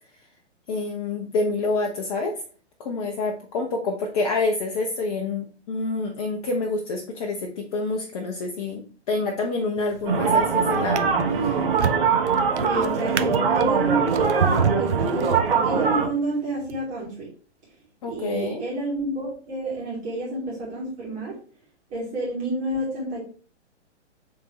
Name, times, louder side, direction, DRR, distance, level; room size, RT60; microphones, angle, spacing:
voice 1, 0.7-2.3 2.8-11.0 11.3-11.6 18.0-18.6, left 3 dB, 30° left, 1 dB, 0.9 m, -27 dB
Drawer open or close, 9.8-10.2 10.7-15.9 16.6-16.8, right 6 dB, 75° right, 0.7 m, -29 dB
sound 1, 10.0-16.1, right 5 dB, 50° right, 1.6 m, -22 dB
voice 2, 12.6-17.3 18.1-21.3 21.9-23.2, right 2 dB, 20° right, -5 dB, 2.4 m, -29 dB
8.2 x 3.6 x 3.2 m, 0.42 s
figure-of-eight pair, 120°, 35 cm